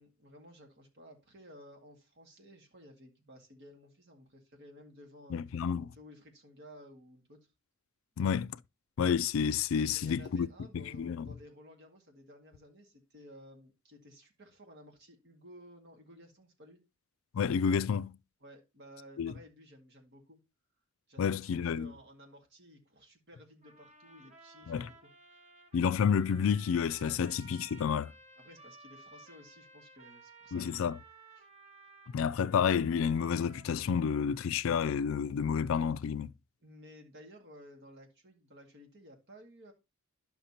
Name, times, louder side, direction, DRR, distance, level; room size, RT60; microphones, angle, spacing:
voice 1, 0.0-5.4 5.9-7.5 9.9-16.8 18.4-20.4 21.1-25.1 28.4-30.7 31.4-31.5 36.6-39.7, equal, 55° right, 2.1 m, -55 dB
voice 2, 5.3-5.9 8.2-8.6 9.0-10.5 10.7-11.3 17.3-18.2 19.2-19.3 21.2-21.9 24.7-24.9 25.7-28.1 30.5-31.0 32.1-36.3, left 7 dB, 65° left, 0.4 m, -30 dB
sound 1, 23.6-34.6, right 3 dB, 35° right, 1.5 m, -56 dB
11.5 x 5.8 x 2.9 m
head